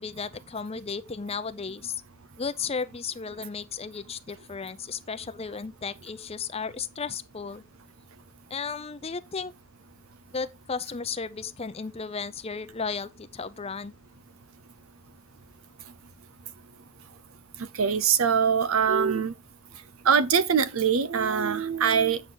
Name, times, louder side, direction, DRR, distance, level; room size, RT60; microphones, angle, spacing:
voice 1, 0.0-2.0 2.4-7.6 8.5-9.5 10.3-13.9, left 5 dB, 30° left, 0.6 m, -34 dB
voice 2, 17.8-19.3 20.1-22.2, right 7 dB, 75° right, 0.6 m, -23 dB
8.3 x 6.4 x 3.9 m
head